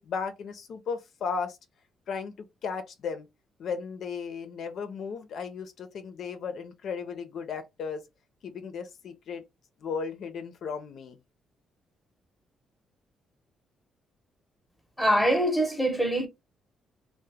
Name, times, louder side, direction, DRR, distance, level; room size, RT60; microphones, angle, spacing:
voice 1, 0.0-1.6 2.1-2.3 2.6-3.3 3.6-8.1 8.4-9.4 9.8-11.2, left 5 dB, 65° left, 0.6 m, -35 dB
voice 2, 15.0-16.3, equal, 5° left, 0.9 m, -24 dB
2.8 x 2.1 x 3.3 m
cardioid pair, 90°, 0 cm